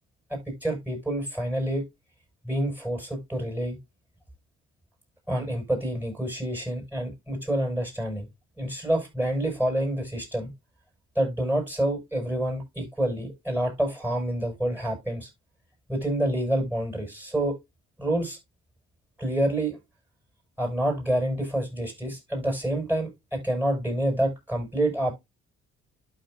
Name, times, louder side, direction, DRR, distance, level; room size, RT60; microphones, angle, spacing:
voice 1, 0.3-1.8 2.5-3.8 5.3-8.3 8.6-10.5 11.2-15.3 15.9-17.6 18.0-18.4 19.2-19.8 20.6-25.1, right 1 dB, 5° right, 6.9 m, -27 dB
12.0 x 6.2 x 2.6 m
cardioid pair, 90°, 30 cm